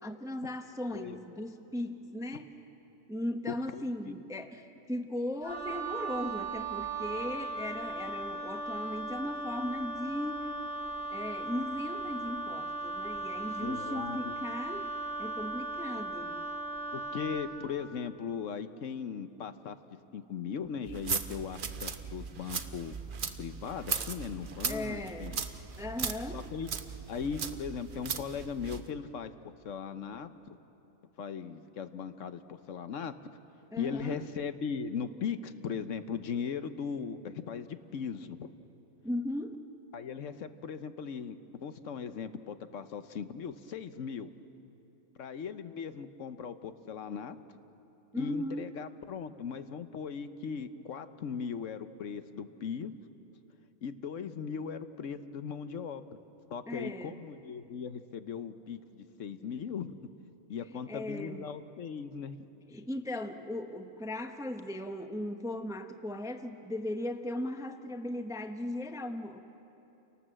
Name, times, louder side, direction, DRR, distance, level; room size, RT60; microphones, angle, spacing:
voice 1, 0.0-2.5 3.1-10.5 11.1-14.9 15.2-16.4 24.7-25.4 25.8-26.4 33.7-34.2 39.0-39.6 48.1-48.7 56.7-57.2 60.9-61.5 62.7-69.4, left 1 dB, 5° right, 7 dB, 0.6 m, -37 dB
voice 2, 0.9-1.5 3.5-4.1 13.6-14.3 16.9-19.8 20.1-22.9 23.4-25.4 26.3-26.7 27.1-30.6 31.2-33.2 33.8-38.5 39.9-44.3 45.2-47.4 48.2-52.9 53.8-56.1 56.5-60.0 60.5-62.4, left 6 dB, 65° left, 11 dB, 1.1 m, -38 dB
Wind instrument woodwind instrument, 5.4-17.5, right 3 dB, 20° right, 5.5 m, -37 dB
sound 1, 20.9-28.9, right 6 dB, 45° right, 0.9 m, -38 dB
28.5 x 18.5 x 7.6 m, 2.9 s
omnidirectional pair, 1.4 m